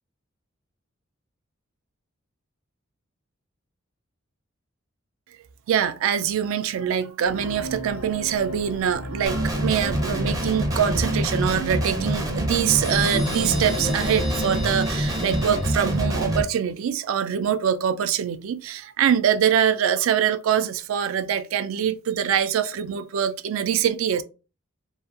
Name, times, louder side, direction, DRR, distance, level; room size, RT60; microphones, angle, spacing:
voice 1, 5.7-24.2, right 8 dB, 75° right, 0.3 m, -24 dB
sound 1, 7.3-15.7, right 1 dB, 90° left, 0.8 m, -37 dB
Guitar, 9.3-16.4, right 1 dB, 15° right, 0.5 m, -26 dB
sound 2, 12.8-16.4, left 4 dB, 35° left, 0.3 m, -35 dB
2.7 x 2.4 x 2.4 m
head